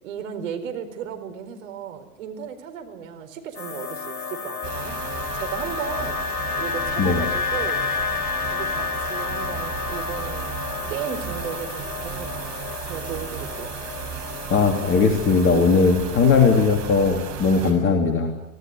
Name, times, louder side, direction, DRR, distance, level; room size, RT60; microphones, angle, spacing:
voice 1, 0.0-5.0 5.3-6.2 6.6-7.8 8.5-10.5 10.9-13.8 16.2-16.5, right 8 dB, 60° right, 7 dB, 4.4 m, -35 dB
sound 1, 3.5-16.8, left 5 dB, 75° left, 1.8 m, -31 dB
sound 2, 4.6-17.7, right 8 dB, 40° right, 5.9 m, -35 dB
voice 2, 14.5-18.3, left 4 dB, 25° left, 3 dB, 3.2 m, -19 dB
25.0 x 17.0 x 9.6 m, 0.86 s
figure-of-eight pair, 100°, 44 cm